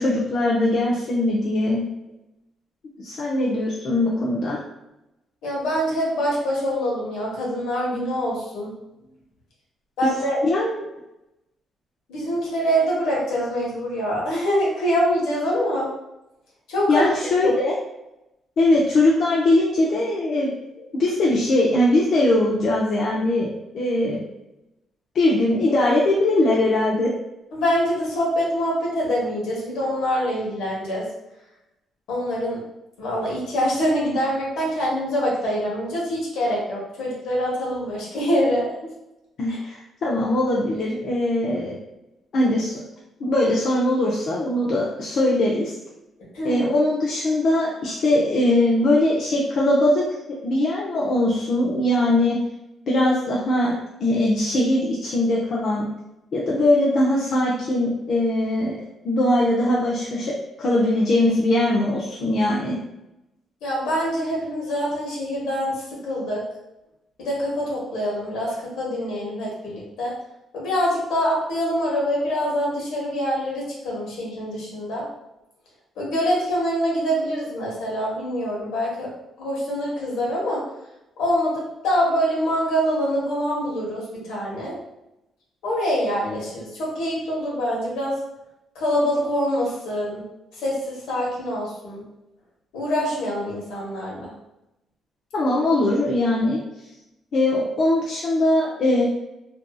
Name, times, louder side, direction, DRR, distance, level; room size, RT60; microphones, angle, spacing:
voice 1, 0.0-1.9 3.0-4.6 10.4-10.8 16.9-17.7 18.6-24.2 25.1-27.1 39.4-41.8 42.3-42.8 43.2-45.7 46.4-50.0 50.4-52.4 52.9-53.8 54.0-55.9 56.3-58.8 59.0-62.8 95.3-96.6 97.3-99.0, left 1 dB, 60° left, -5 dB, 0.5 m, -21 dB
voice 2, 5.4-8.7 10.0-10.4 12.1-15.9 16.7-17.5 27.5-31.1 32.1-32.6 33.0-38.7 39.5-39.6 46.3-46.6 63.6-66.4 67.2-70.1 70.5-75.1 76.0-79.1 79.4-80.6 81.2-84.8 85.6-88.1 88.7-90.3 90.6-92.0 92.7-94.3, equal, 85° left, -5 dB, 1.0 m, -25 dB
2.6 x 2.5 x 2.3 m, 0.92 s
cardioid pair, 90°, 0 cm